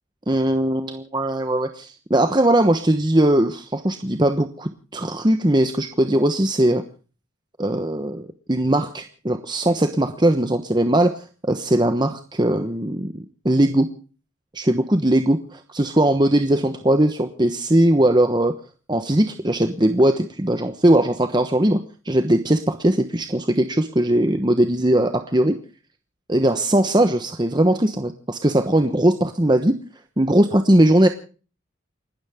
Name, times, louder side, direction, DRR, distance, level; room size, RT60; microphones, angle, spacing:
voice 1, 0.3-6.8 7.6-13.9 14.5-18.5 18.9-21.8 22.0-25.5 26.3-29.7 30.2-31.1, right 1 dB, 20° right, 8 dB, 1.1 m, -19 dB
29.5 x 12.5 x 3.6 m, 0.38 s
head